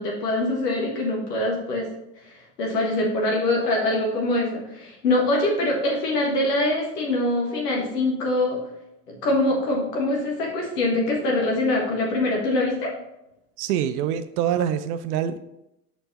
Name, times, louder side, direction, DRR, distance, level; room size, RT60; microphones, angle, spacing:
voice 1, 0.0-1.9 2.3-8.6 9.2-12.9, left 2 dB, 75° left, -1 dB, 1.6 m, -24 dB
voice 2, 13.6-15.4, right 9 dB, 65° right, 12 dB, 0.6 m, -25 dB
6.9 x 4.4 x 4.0 m, 0.86 s
hypercardioid pair, 75°, 48 cm